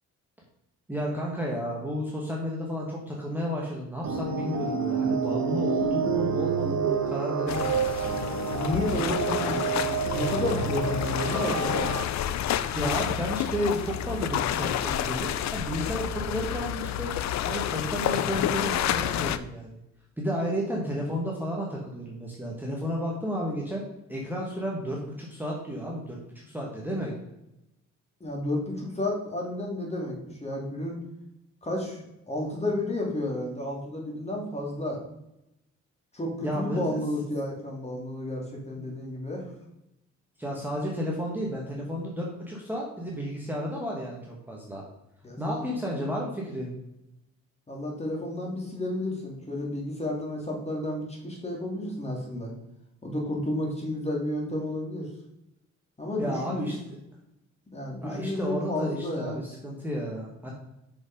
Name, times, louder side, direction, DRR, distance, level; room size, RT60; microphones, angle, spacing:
voice 1, 0.9-8.1 12.7-17.2 17.4-19.8 20.2-23.8 24.1-27.1 36.4-37.0 38.8-38.9 40.4-44.8 45.4-46.7 56.2-56.7 58.0-60.5, equal, 5° right, -3 dB, 1.7 m, -32 dB
sound 1, 4.0-12.0, right 6 dB, 65° right, 1.2 m, -28 dB
sound 2, 7.5-19.4, left 11 dB, 65° left, 0.5 m, -29 dB
voice 2, 8.6-9.8 10.1-11.9 28.2-31.0 31.6-35.0 36.1-39.5 45.2-45.7 47.7-52.5 53.0-55.1 56.0-56.6 57.7-59.4, left 1 dB, 20° left, -1 dB, 2.6 m, -31 dB
6.1 x 5.3 x 5.2 m, 0.86 s
cardioid pair, 90°, 30 cm